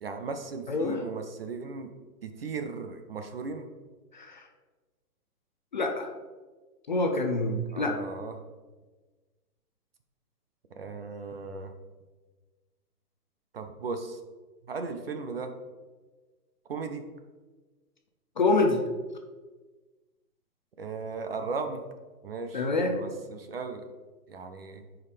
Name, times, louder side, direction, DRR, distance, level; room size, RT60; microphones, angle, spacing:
voice 1, 0.0-1.9 2.2-3.7 7.7-8.3 10.8-11.7 13.5-14.2 14.7-15.5 16.7-17.1 20.8-21.8 22.2-23.8 24.3-24.8, right 4 dB, 40° right, 7 dB, 0.6 m, -36 dB
voice 2, 0.7-1.0 4.1-4.5 5.7-6.1 6.9-8.0 18.4-18.8 22.5-23.0, left 2 dB, 30° left, 4 dB, 0.5 m, -26 dB
6.5 x 4.8 x 5.0 m, 1.3 s
hypercardioid pair, 165°, 47 cm